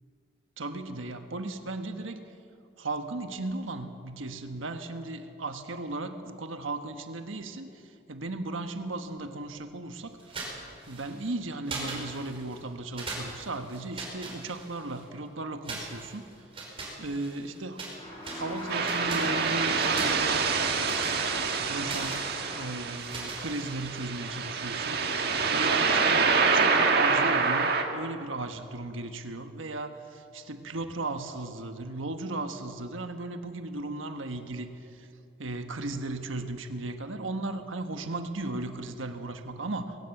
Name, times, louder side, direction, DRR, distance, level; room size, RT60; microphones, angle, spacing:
voice 1, 0.6-2.2 2.8-10.5 10.9-16.3 17.0-17.8 18.3-20.5 21.6-25.2 25.5-35.1 35.4-40.0, right 2 dB, 90° right, 7 dB, 1.3 m, -36 dB
sound 1, 10.2-11.3 11.6-12.6 13.0-15.0 15.6-18.0 18.2-24.0, right 3 dB, 30° right, 5.4 m, -41 dB
sound 2, 17.9-22.9, left 1 dB, 25° left, 7.0 m, -41 dB
sound 3, 18.7-27.8, right 4 dB, 55° right, 1.8 m, -26 dB
20.5 x 17.0 x 7.9 m, 2.4 s
head